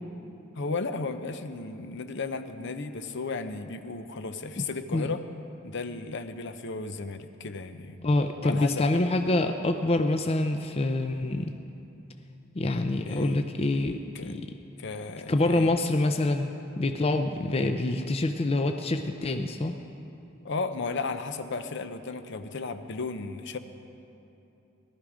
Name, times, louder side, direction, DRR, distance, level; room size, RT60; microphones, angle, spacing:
voice 1, 0.5-5.2 5.6-8.1 8.4-8.9 13.1-13.4 14.1-14.3 14.8-15.7 20.4-23.6, left 4 dB, 60° left, 9 dB, 0.7 m, -34 dB
voice 2, 8.0-11.6 12.5-14.5 15.3-16.5 16.8-19.7, left 2 dB, 30° left, 6 dB, 0.5 m, -26 dB
18.0 x 13.0 x 5.0 m, 2.8 s
head